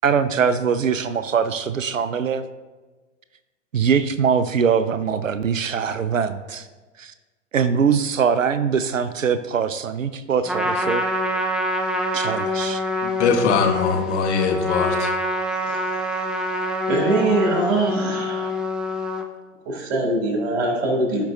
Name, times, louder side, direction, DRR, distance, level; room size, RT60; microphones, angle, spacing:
voice 1, 0.0-2.4 3.7-6.7 7.0-7.1 7.5-11.0 12.1-12.8, right 6 dB, 90° right, 12 dB, 0.5 m, -22 dB
Trumpet, 10.5-19.3, left 1 dB, ahead, 0.3 m, -25 dB
voice 2, 13.0-15.1, left 5 dB, 60° left, 3 dB, 1.4 m, -21 dB
voice 3, 16.9-18.5 19.7-21.2, right 2 dB, 55° right, 1 dB, 2.7 m, -22 dB
16.0 x 5.4 x 2.6 m, 1.3 s
figure-of-eight pair, 95°, 38 cm